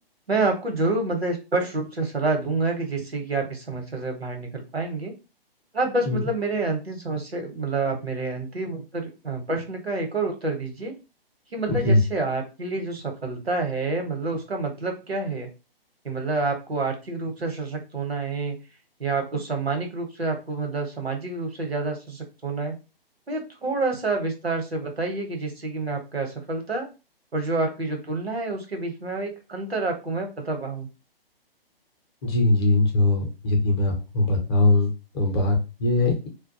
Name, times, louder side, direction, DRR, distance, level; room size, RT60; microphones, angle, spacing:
voice 1, 0.3-5.1 5.7-10.9 11.5-15.5 16.0-18.6 19.0-22.7 23.3-26.9 27.3-30.9, right 3 dB, 85° right, 4 dB, 0.9 m, -28 dB
voice 2, 11.7-12.0 32.2-36.3, left 2 dB, 25° left, 1 dB, 0.6 m, -21 dB
2.3 x 2.2 x 2.6 m, 0.30 s
figure-of-eight pair, 130°, 30 cm